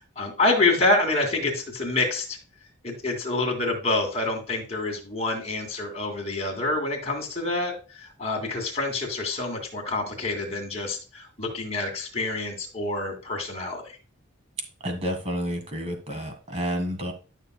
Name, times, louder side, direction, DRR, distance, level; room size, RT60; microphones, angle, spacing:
voice 1, 0.2-2.4 2.8-14.0, left 2 dB, 30° left, 1 dB, 2.5 m, -27 dB
voice 2, 14.8-17.1, equal, 30° right, 6 dB, 1.7 m, -30 dB
12.0 x 6.4 x 2.2 m, 0.34 s
head